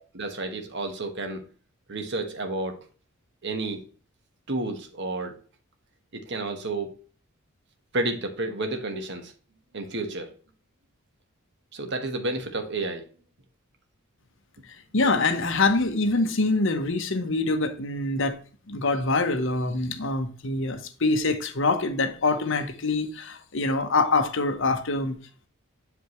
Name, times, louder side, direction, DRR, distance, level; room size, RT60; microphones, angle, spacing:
voice 1, 0.0-1.4 1.9-2.8 3.4-3.8 4.5-5.4 6.1-7.0 7.9-9.3 9.7-10.3 11.7-13.1, right 2 dB, 55° right, 1.3 m, -31 dB
voice 2, 14.7-18.4 18.7-25.1, left 3 dB, 65° left, 1.0 m, -25 dB
7.7 x 5.2 x 3.1 m
head